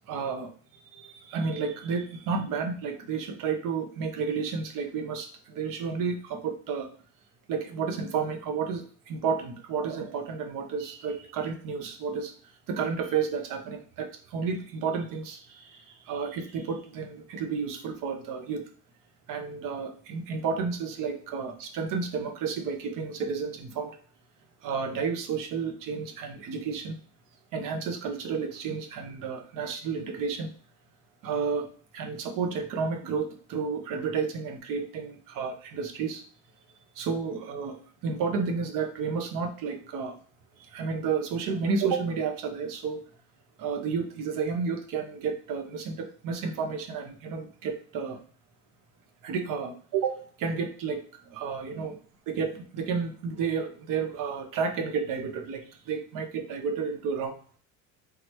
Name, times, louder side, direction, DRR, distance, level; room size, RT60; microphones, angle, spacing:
voice 1, 0.1-0.5 0.8-6.9 7.5-12.3 12.7-18.6 19.3-24.0 24.6-27.0 27.5-30.5 31.2-31.7 31.9-36.2 37.0-40.2 40.6-43.0 43.6-48.2 49.2-52.0 52.3-57.6, right 5 dB, 50° right, 5 dB, 1.0 m, -31 dB
3.8 x 3.3 x 3.0 m, 0.42 s
supercardioid pair, 100°, 41 cm